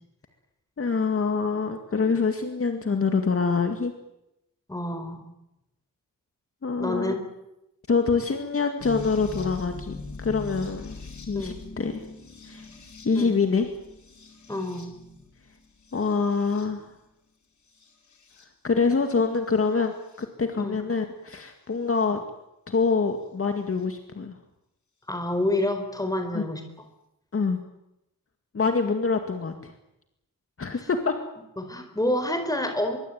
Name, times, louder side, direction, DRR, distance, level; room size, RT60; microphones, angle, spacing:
voice 1, 0.8-3.9 6.6-7.1 7.9-11.0 11.3-12.0 12.4-12.7 13.0-13.7 15.9-16.9 18.6-19.9 20.2-22.2 22.7-24.4 26.3-26.4 27.3-27.6 28.5-29.7 30.6-31.1, left 4 dB, 40° left, 5 dB, 2.2 m, -25 dB
voice 2, 4.7-5.2 6.8-7.2 11.3-11.6 13.1-13.4 14.5-14.9 20.6-20.8 25.1-26.6 31.6-33.0, left 1 dB, 10° left, 6 dB, 4.5 m, -28 dB
sound 1, 8.8-16.9 17.7-18.4 19.6-20.2 22.0-22.1 23.8-23.9, left 3 dB, 55° left, 4.8 m, -42 dB
24.0 x 23.5 x 9.3 m, 0.87 s
wide cardioid pair, 170°, 33 cm